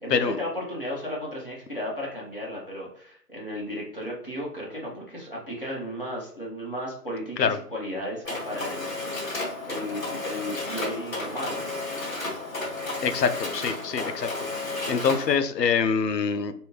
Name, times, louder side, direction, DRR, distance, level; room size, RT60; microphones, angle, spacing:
voice 1, 0.0-8.9 9.6-11.7, equal, 35° left, -4 dB, 0.9 m, -34 dB
Mechanisms, 8.2-15.3, left 2 dB, 55° left, 1.1 m, -32 dB
voice 2, 13.0-14.3 14.6-16.5, left 6 dB, 80° left, 9 dB, 0.6 m, -25 dB
3.3 x 2.6 x 3.1 m, 0.62 s
figure-of-eight pair, 175°, 49 cm